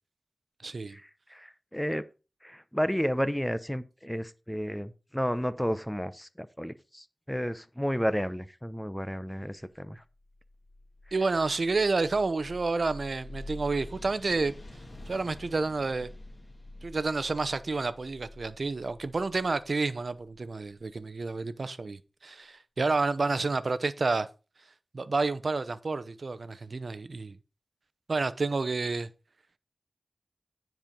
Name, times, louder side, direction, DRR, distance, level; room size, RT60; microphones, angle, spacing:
voice 1, 0.6-1.0 11.1-14.6 15.1-16.1 16.8-24.3 24.9-27.4 28.1-29.1, right 3 dB, 65° right, 0.7 m, -29 dB
voice 2, 1.3-2.0 2.4-10.0, equal, 5° left, 0.7 m, -32 dB
sound 1, 10.2-21.0, left 1 dB, 35° left, 2.6 m, -47 dB
9.9 x 4.6 x 5.2 m
wide cardioid pair, 65°, 0 cm